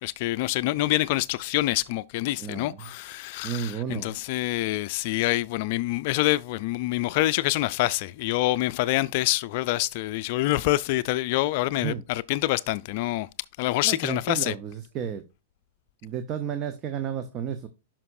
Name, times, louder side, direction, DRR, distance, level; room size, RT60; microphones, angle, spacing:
voice 1, 0.0-13.3 13.6-14.5, left 17 dB, 55° left, 0.3 m, -26 dB
voice 2, 2.4-2.9 3.4-4.2 11.8-12.0 13.8-15.2 16.0-17.7, right 8 dB, 35° right, 0.8 m, -32 dB
11.0 x 5.9 x 2.6 m
hypercardioid pair, 115°, 0 cm